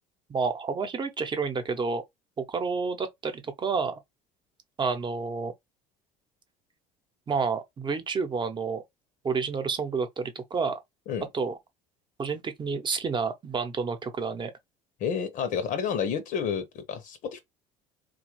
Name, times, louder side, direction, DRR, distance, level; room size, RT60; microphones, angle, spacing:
voice 1, 0.3-2.0 2.4-4.0 4.8-5.5 7.3-8.8 9.2-10.8 11.3-11.6 12.2-14.5, right 5 dB, 30° right, 0.8 m, -29 dB
voice 2, 15.0-17.4, left 7 dB, 55° left, 0.7 m, -30 dB
3.2 x 2.3 x 3.0 m
supercardioid pair, 85°, 16 cm